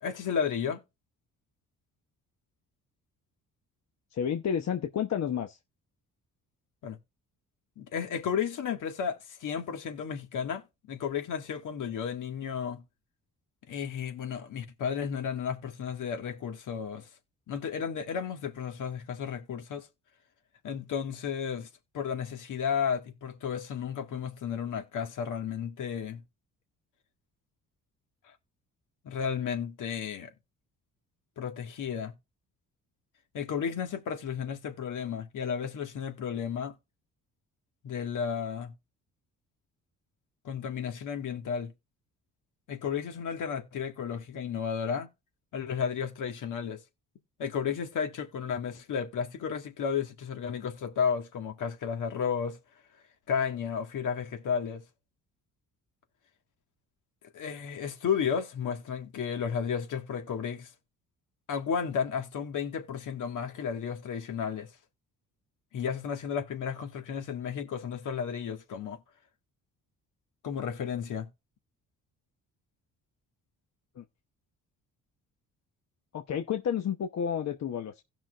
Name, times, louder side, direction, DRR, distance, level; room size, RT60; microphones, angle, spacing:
voice 1, 0.0-0.8 6.8-7.0 7.8-12.8 13.7-17.1 17.5-19.9 20.6-21.7 21.9-26.2 29.0-30.3 31.4-32.1 33.3-36.7 37.8-38.7 40.4-41.7 42.7-45.1 45.5-46.8 47.4-52.6 53.3-54.8 57.3-60.7 61.5-64.7 65.7-69.0 70.4-71.3, left 7 dB, 70° left, 1.8 m, -33 dB
voice 2, 4.1-5.6 73.9-74.0 76.1-78.0, left 8 dB, 55° left, 1.0 m, -31 dB
16.5 x 5.9 x 2.5 m
cardioid pair, 85°, 32 cm